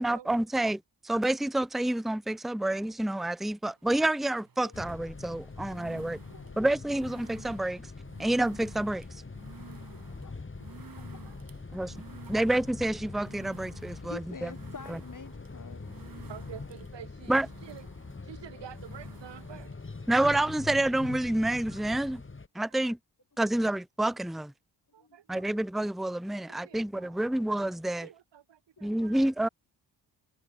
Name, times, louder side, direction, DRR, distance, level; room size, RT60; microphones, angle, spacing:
voice 1, 0.0-6.2 6.6-7.8 8.2-9.0 11.7-11.9 12.3-14.5 14.9-15.0 17.3-17.5 20.1-22.2 22.5-23.0 23.4-24.5 25.3-28.1 28.8-29.5, right 1 dB, ahead, 0.8 m, -28 dB
sound 1, 3.7-20.6, right 6 dB, 50° right, 4.5 m, -54 dB
sound 2, 4.7-22.5, left 3 dB, 30° left, 3.5 m, -43 dB
voice 2, 5.7-6.0 6.3-6.6 8.2-8.3 9.6-10.5 11.1-11.4 14.1-15.8 25.0-25.2 26.5-26.8 28.9-29.0, left 5 dB, 45° left, 7.1 m, -48 dB
voice 3, 10.9-11.4 11.7-11.9 12.3-12.5 16.3-17.9 18.2-19.8 24.9-25.5 26.5-27.3 28.0-29.3, right 9 dB, 75° right, 4.1 m, -49 dB
cardioid pair, 65°, 43 cm